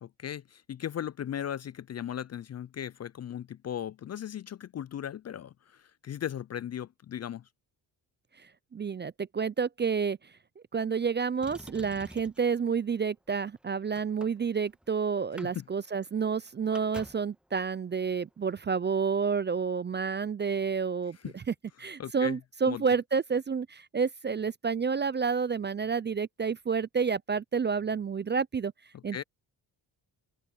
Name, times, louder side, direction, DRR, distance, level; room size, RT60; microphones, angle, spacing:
voice 1, 0.0-7.4 15.4-15.6 21.2-21.3 22.0-22.4 22.6-22.8 29.1-29.2, left 10 dB, 35° left, 0.4 m, -37 dB
voice 2, 8.7-10.2 10.7-28.7 29.0-29.2, right 5 dB, 25° right, 0.4 m, -29 dB
Motor vehicle (road), 11.4-12.5 13.3-14.9 15.2-15.5 15.8-15.9 16.2-17.4 18.4-18.5, equal, ahead, 1.4 m, -48 dB
supercardioid pair, 65°, 47 cm